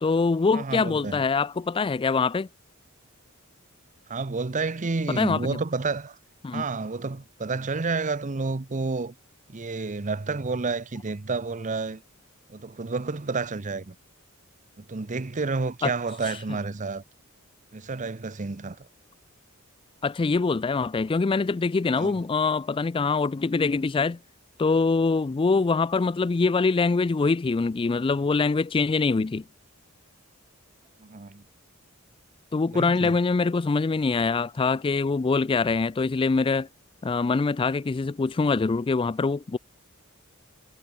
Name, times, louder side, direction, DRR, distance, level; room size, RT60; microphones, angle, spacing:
voice 1, 0.0-2.5 5.1-5.5 6.4-6.6 15.8-15.9 20.0-24.2 24.6-29.4 32.5-36.7 37.0-39.6, left 4 dB, 25° left, 0.3 m, -24 dB
voice 2, 0.5-1.2 4.1-6.2 6.5-9.1 9.5-12.0 12.5-13.9 14.8-17.0 17.7-18.9 22.0-22.1 31.0-31.4 32.7-33.2, right 3 dB, 35° right, 0.7 m, -30 dB
head